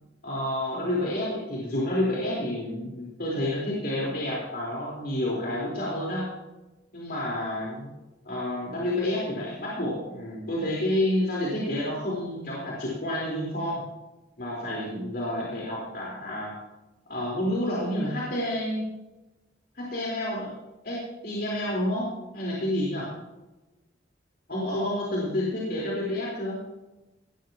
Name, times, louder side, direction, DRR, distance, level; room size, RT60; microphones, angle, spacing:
voice 1, 0.2-6.3 6.9-7.9 8.2-13.8 14.4-16.5 17.1-18.9 19.8-20.5 20.8-22.1 22.3-23.1 24.5-26.6, left 1 dB, 60° left, -5 dB, 4.4 m, -29 dB
19.0 x 14.0 x 3.1 m, 1.1 s
head